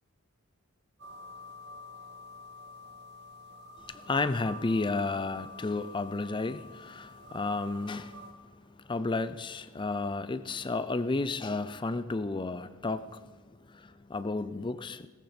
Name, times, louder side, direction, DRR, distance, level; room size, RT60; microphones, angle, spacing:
sound 1, 1.0-8.3, left 2 dB, 50° right, 1.5 m, -48 dB
voice 1, 3.9-15.1, left 3 dB, 20° left, 0.4 m, -32 dB
17.0 x 14.5 x 4.3 m
head